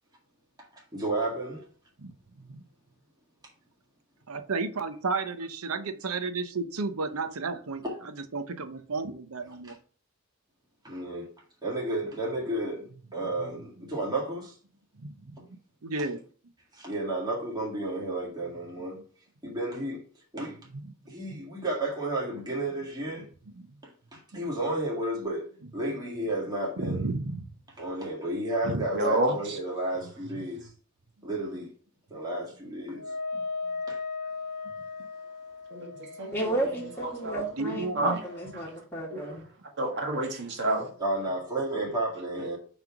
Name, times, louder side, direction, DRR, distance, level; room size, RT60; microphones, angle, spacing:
voice 1, 0.9-1.7 7.8-7.9 10.8-11.3 11.6-12.9 13.1-14.5 16.8-19.0 19.4-20.0 20.3-20.6 21.1-23.3 24.1-27.0 27.8-30.7 31.2-31.7 32.1-33.0 33.9-34.0 41.0-42.6, right 1 dB, 20° right, 1.9 m, -32 dB
voice 2, 2.0-2.6 4.3-9.8 13.2-13.5 14.9-16.2 20.4-20.9 21.3-21.4 23.5-23.8 24.3-24.4 26.8-27.5 28.6-28.9 30.0-30.1 35.9-36.0 37.6-38.2, right 3 dB, 85° right, 0.8 m, -33 dB
voice 3, 28.9-29.6 35.7-36.5 37.0-37.4 38.0-38.2 39.1-39.3 39.8-40.9, right 1 dB, 55° right, 1.8 m, -29 dB
Wind instrument woodwind instrument, 33.0-38.6, left 4 dB, 85° left, 0.7 m, -38 dB
voice 4, 36.3-39.4, right 1 dB, 10° left, 1.5 m, -33 dB
6.0 x 3.5 x 5.9 m
head